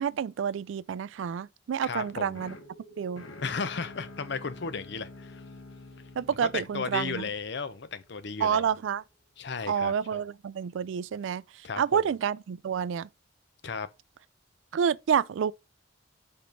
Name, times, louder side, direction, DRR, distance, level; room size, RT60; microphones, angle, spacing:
voice 1, 0.0-2.5 3.0-3.2 6.2-7.3 8.4-9.0 9.7-11.4 11.8-13.1 14.7-15.5, right 7 dB, 75° right, 0.3 m, -28 dB
voice 2, 1.8-2.4 3.4-5.4 6.4-8.7 9.4-10.2 11.6-12.0 13.6-13.9, left 5 dB, 60° left, 0.7 m, -34 dB
sound 1, 1.8-9.2, right 2 dB, 5° left, 1.7 m, -55 dB
sound 2, 2.0-8.1, left 3 dB, 85° left, 1.0 m, -48 dB
5.1 x 4.4 x 5.2 m
head